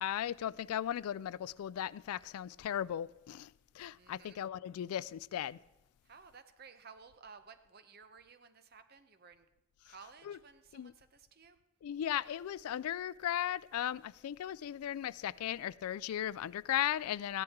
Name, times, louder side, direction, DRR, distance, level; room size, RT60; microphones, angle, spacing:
voice 1, 0.0-5.6 10.3-10.4 10.7-10.9 11.8-17.4, left 11 dB, 90° left, 0.3 m, -37 dB
voice 2, 3.9-4.4 6.0-9.5 9.9-11.6, right 5 dB, 45° right, 0.7 m, -56 dB
15.0 x 10.5 x 3.6 m
head